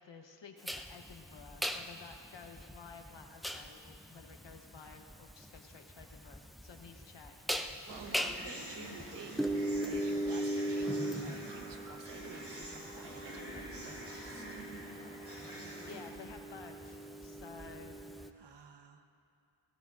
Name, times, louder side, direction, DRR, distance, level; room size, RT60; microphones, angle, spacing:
voice 1, 0.0-7.7 15.6-18.2, left 5 dB, 60° left, 4 dB, 1.0 m, -53 dB
sound 1, 0.6-18.3, right 1 dB, ahead, 0.3 m, -39 dB
voice 2, 7.6-14.4 18.3-19.0, right 5 dB, 60° right, 6 dB, 1.0 m, -52 dB
sound 2, 7.9-16.0, right 1 dB, 25° right, 2.4 m, -47 dB
19.0 x 16.5 x 2.5 m, 2.5 s
wide cardioid pair, 145°, 49 cm